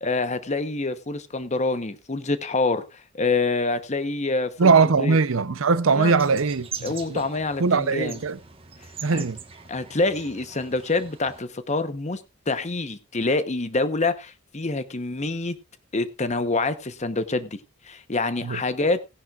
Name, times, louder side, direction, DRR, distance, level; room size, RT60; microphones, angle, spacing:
voice 1, 0.0-5.2 5.9-6.1 6.8-8.2 9.1-9.2 9.7-12.2 12.5-15.5 15.9-17.6 17.8-19.0, left 3 dB, 35° left, 0.9 m, -26 dB
voice 2, 4.6-7.2 7.6-8.4 9.0-9.4 18.4-18.6, right 4 dB, 80° right, 0.7 m, -21 dB
sound 1, 6.1-11.4, right 6 dB, 30° right, 1.3 m, -42 dB
17.5 x 10.5 x 2.4 m
head